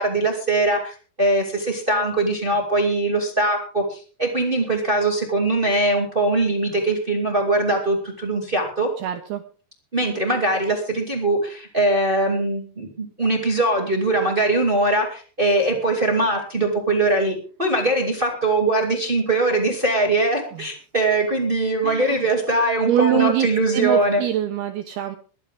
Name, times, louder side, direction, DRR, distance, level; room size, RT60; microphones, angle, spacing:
voice 1, 0.0-8.9 9.9-24.2, right 2 dB, 25° right, 2 dB, 1.2 m, -21 dB
voice 2, 9.0-9.4 20.5-20.7 21.8-22.3 22.9-23.5 23.7-25.2, right 10 dB, 80° right, 6 dB, 2.3 m, -23 dB
22.0 x 11.0 x 3.6 m, 0.39 s
omnidirectional pair, 5.6 m